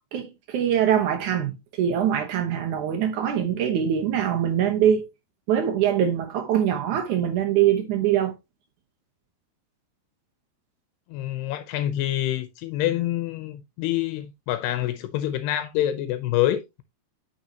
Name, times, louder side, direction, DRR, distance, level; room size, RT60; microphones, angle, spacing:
voice 1, 0.1-5.1 5.5-8.3, right 9 dB, 70° right, 2.0 m, -23 dB
voice 2, 11.1-16.8, left 13 dB, 80° left, 2.7 m, -26 dB
9.3 x 6.4 x 2.8 m
omnidirectional pair, 4.8 m